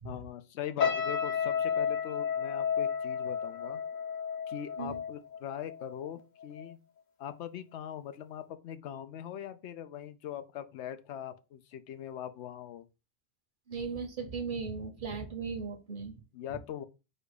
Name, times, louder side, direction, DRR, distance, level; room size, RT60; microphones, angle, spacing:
voice 1, 0.0-3.8 4.5-6.8 7.2-12.9 16.3-16.8, left 10 dB, 85° left, 0.9 m, -41 dB
sound 1, 0.8-6.1 6.4-6.7, left 7 dB, 50° left, 0.7 m, -32 dB
voice 2, 13.7-16.2 16.5-16.6, right 5 dB, 50° right, 0.9 m, -37 dB
4.4 x 2.3 x 4.7 m
omnidirectional pair, 1.1 m